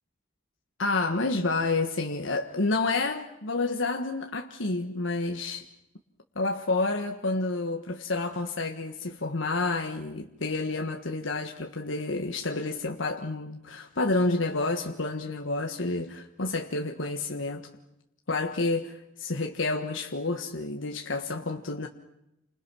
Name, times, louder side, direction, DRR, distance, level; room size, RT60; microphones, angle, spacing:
voice 1, 0.8-5.6 6.3-17.7 18.3-21.9, left 3 dB, 80° left, 4 dB, 1.5 m, -29 dB
29.5 x 26.0 x 6.2 m, 0.87 s
head